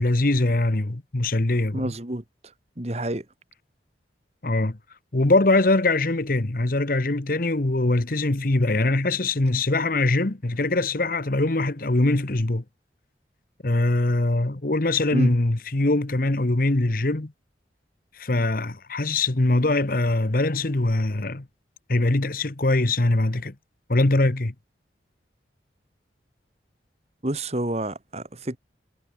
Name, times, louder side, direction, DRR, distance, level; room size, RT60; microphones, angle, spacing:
voice 1, 0.0-1.9 4.4-4.8 5.1-12.6 13.6-17.3 18.1-21.5 21.9-23.5 23.9-24.5, left 2 dB, 50° left, 1.2 m, -22 dB
voice 2, 1.7-2.2 2.8-3.2 15.1-15.3 27.2-28.6, right 1 dB, 35° right, 2.1 m, -28 dB
head